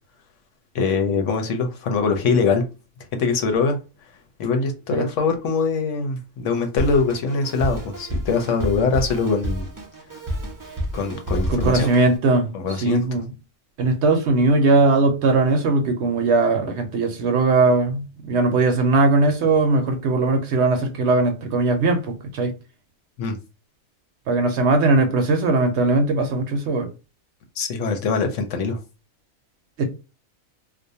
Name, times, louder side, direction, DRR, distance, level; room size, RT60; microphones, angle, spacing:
voice 1, 0.7-2.6 3.1-3.8 4.4-9.7 10.9-11.9 12.5-13.0 23.2-23.4 27.6-28.8, left 4 dB, 70° left, 0.9 m, -22 dB
Drum kit, 6.8-12.2, equal, 30° right, 0.3 m, -29 dB
voice 2, 11.5-13.3 13.8-22.5 24.3-26.9 29.8-29.9, right 3 dB, 65° right, 0.8 m, -19 dB
2.5 x 2.2 x 2.6 m
omnidirectional pair, 1.4 m